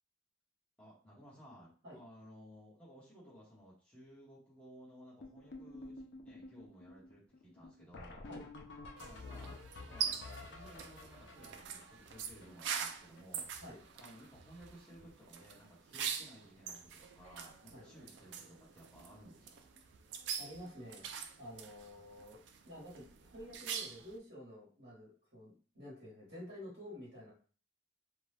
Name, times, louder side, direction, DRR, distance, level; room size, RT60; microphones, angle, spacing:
voice 1, 0.8-8.2 9.0-13.5 13.9-19.7, equal, 5° left, -9 dB, 1.0 m, -57 dB
sound 1, 5.2-13.4 13.7-13.8 14.0-14.3 14.5-15.1 15.4-15.6 16.4-16.5 17.0-17.1 17.3-17.5 19.8-19.9 22.2-22.3, left 2 dB, 70° left, 0.5 m, -51 dB
sound 2, 9.0-24.2, right 7 dB, 70° right, 0.4 m, -44 dB
voice 2, 20.4-21.1 21.4-22.4 22.6-27.3, left 1 dB, 55° right, -6 dB, 1.4 m, -50 dB
2.7 x 2.3 x 3.3 m, 0.40 s
head